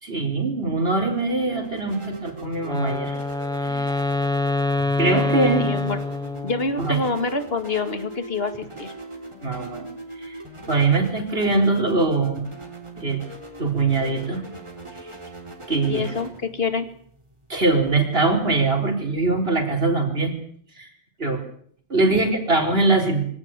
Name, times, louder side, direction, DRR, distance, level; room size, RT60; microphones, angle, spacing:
voice 1, 0.0-3.2 3.6-3.9 5.0-5.6 6.8-7.0 9.4-9.9 10.2-10.4 10.7-12.5 13.0-13.2 13.6-14.4 15.7-16.1 17.5-20.3 20.8-20.9 21.2-21.4 21.9-23.2, right 3 dB, 55° right, 3 dB, 4.4 m, -22 dB
sound 1, 0.8-19.0, right 1 dB, 25° right, 3.6 m, -41 dB
Wind instrument woodwind instrument, 2.6-6.8, left 2 dB, 5° left, 0.9 m, -25 dB
voice 2, 5.6-6.0 6.4-8.9 15.8-16.9 22.0-22.5, left 4 dB, 55° left, 9 dB, 2.3 m, -27 dB
24.5 x 17.5 x 8.9 m, 0.63 s
omnidirectional pair, 1.2 m